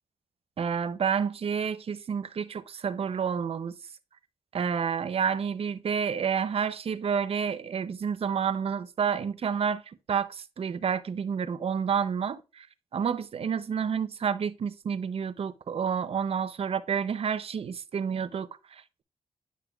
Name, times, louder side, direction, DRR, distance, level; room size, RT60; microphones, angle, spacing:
voice 1, 0.6-3.7 4.5-9.8 10.1-12.7 12.9-19.0, right 7 dB, 55° right, 0.6 m, -29 dB
9.4 x 5.6 x 2.3 m
cardioid pair, 60°, 12 cm